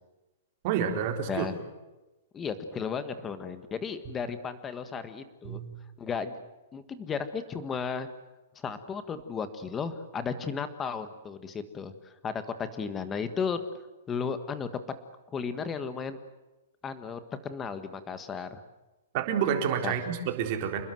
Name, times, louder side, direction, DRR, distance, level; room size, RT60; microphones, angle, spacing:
voice 1, 0.6-1.5 5.4-5.6 19.1-20.8, right 8 dB, 30° right, 4 dB, 4.0 m, -28 dB
voice 2, 2.3-5.6 6.0-6.3 6.7-8.1 8.5-11.9 12.2-13.6 14.1-14.8 15.3-16.2 16.8-18.6 19.8-19.9, left 6 dB, 10° left, 11 dB, 1.5 m, -34 dB
28.5 x 21.0 x 7.8 m, 1.1 s
hypercardioid pair, 175°, 0 cm